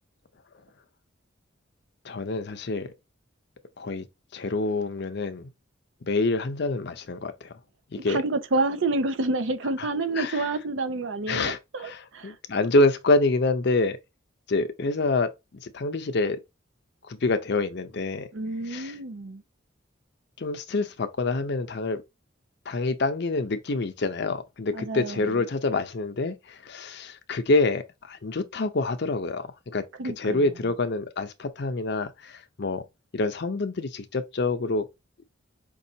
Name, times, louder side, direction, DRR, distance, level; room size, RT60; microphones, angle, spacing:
voice 1, 2.0-2.9 3.8-4.0 4.3-5.5 6.0-7.5 7.9-8.2 10.2-10.5 11.3-14.0 14.5-15.3 15.6-16.4 17.1-18.3 18.7-18.9 20.4-22.0 22.7-29.8 30.2-32.8 33.1-34.9, left 2 dB, 55° left, 0.6 m, -26 dB
voice 2, 8.0-12.3 18.3-19.4 24.7-25.4 30.0-30.4, right 2 dB, 70° right, 0.6 m, -29 dB
5.3 x 2.4 x 2.8 m
head